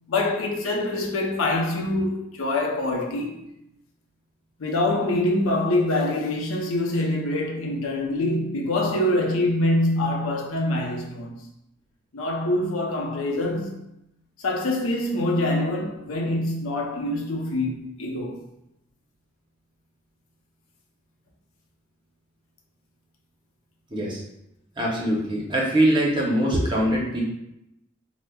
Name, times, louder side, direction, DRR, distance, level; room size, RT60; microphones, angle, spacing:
voice 1, 0.1-3.4 4.6-11.4 12.1-13.8 14.4-18.4, left 1 dB, 85° left, 0.6 m, -25 dB
voice 2, 23.9-24.2 24.8-27.2, right 1 dB, 25° right, 0.7 m, -22 dB
4.9 x 2.1 x 2.3 m
head